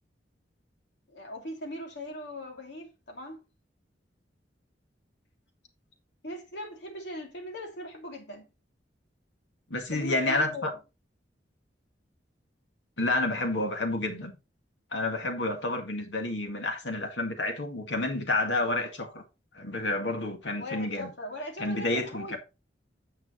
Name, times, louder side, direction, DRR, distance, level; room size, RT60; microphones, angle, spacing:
voice 1, 1.1-3.4 6.2-8.5 9.9-10.6 20.6-22.4, equal, 70° left, 2.8 m, -39 dB
voice 2, 9.7-10.7 13.0-14.3 14.9-19.2 19.5-21.1 21.6-22.4, left 2 dB, 90° left, 2.1 m, -29 dB
9.2 x 7.0 x 3.2 m
head